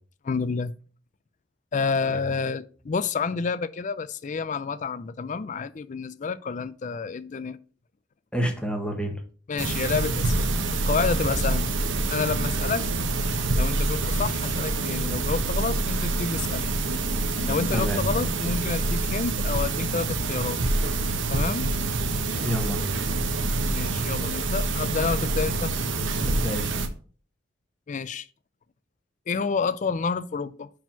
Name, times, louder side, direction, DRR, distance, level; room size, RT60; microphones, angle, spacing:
voice 1, 0.2-0.7 1.7-7.6 9.5-11.7 12.1-12.9 13.5-16.7 17.5-20.6 21.3-21.7 23.7-25.7 27.9-28.3 29.3-30.7, left 5 dB, 40° left, 0.4 m, -29 dB
voice 2, 8.3-9.2 17.7-18.0 22.4-23.0 26.3-26.7, right 1 dB, 5° left, 1.2 m, -29 dB
sound 1, 9.6-26.9, right 2 dB, 70° right, 1.0 m, -26 dB
5.5 x 4.9 x 5.8 m
head